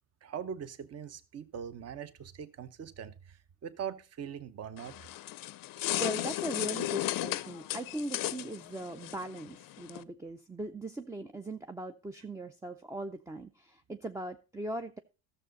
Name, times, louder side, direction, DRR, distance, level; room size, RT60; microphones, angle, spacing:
voice 1, 0.2-5.0, right 8 dB, 35° right, 0.9 m, -41 dB
sound 1, 4.8-10.0, left 15 dB, 55° left, 0.5 m, -35 dB
voice 2, 6.0-15.0, right 1 dB, 10° right, 0.4 m, -39 dB
13.0 x 6.7 x 3.9 m
supercardioid pair, 90°, 41 cm